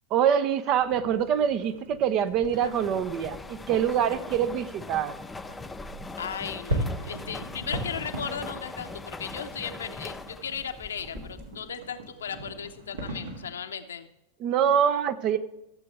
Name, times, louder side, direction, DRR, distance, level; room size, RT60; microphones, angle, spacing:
voice 1, 0.1-5.1 14.4-15.4, right 8 dB, 40° right, 12 dB, 0.7 m, -25 dB
sound 1, 0.8-13.5, right 1 dB, 70° right, 2.1 m, -39 dB
sound 2, 2.4-11.7, left 3 dB, 10° left, 0.4 m, -41 dB
voice 2, 6.2-14.1, left 7 dB, 65° left, 8 dB, 0.9 m, -36 dB
14.0 x 7.8 x 3.3 m, 0.90 s
figure-of-eight pair, 90°, 0 cm